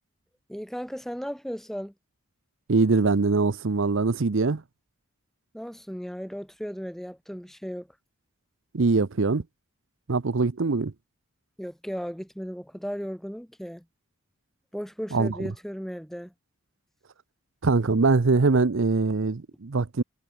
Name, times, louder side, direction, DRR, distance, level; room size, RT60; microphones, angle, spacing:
voice 1, 0.5-1.9 5.5-7.9 11.6-13.8 14.7-16.3, equal, ahead, 2.1 m, -36 dB
voice 2, 2.7-4.6 8.7-9.4 10.1-10.9 15.1-15.5 17.6-20.0, right 3 dB, 60° right, 0.7 m, -23 dB
head